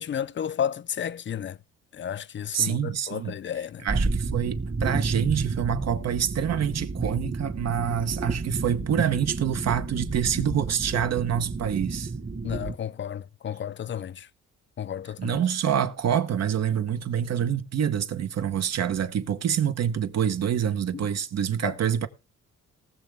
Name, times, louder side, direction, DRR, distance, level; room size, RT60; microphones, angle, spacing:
voice 1, 0.0-1.6 1.9-3.9 12.4-14.3 14.8-15.4 20.9-21.1 21.6-21.7, left 9 dB, 40° left, 0.6 m, -32 dB
voice 2, 2.5-3.4 3.8-12.1 15.2-22.1, right 9 dB, 60° right, 1.2 m, -26 dB
sound 1, 3.9-12.7, right 3 dB, 25° right, 1.4 m, -30 dB
19.0 x 6.9 x 3.5 m
cardioid pair, 90°, 30 cm